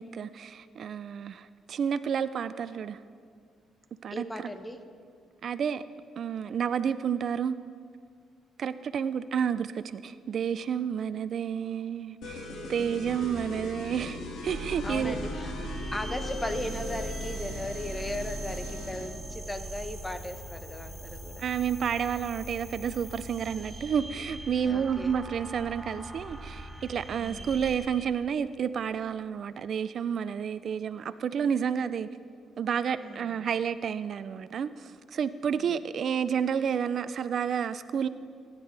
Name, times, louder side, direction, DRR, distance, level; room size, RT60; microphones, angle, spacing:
voice 1, 0.0-3.0 4.0-4.5 5.4-5.8 6.2-7.6 8.6-15.2 21.4-32.1 32.6-38.1, right 7 dB, 60° right, 13 dB, 0.4 m, -30 dB
voice 2, 4.1-4.8 12.8-13.1 14.8-15.5 15.9-21.4 24.6-25.1 27.2-27.6 33.0-33.4 35.5-35.8, left 1 dB, 15° left, 7 dB, 1.2 m, -37 dB
sound 1, 12.2-19.1, left 2 dB, 80° left, 1.9 m, -39 dB
sound 2, 14.4-27.8, right 1 dB, 10° right, 3.9 m, -40 dB
22.0 x 10.5 x 3.3 m, 2.2 s
cardioid pair, 80°, 0 cm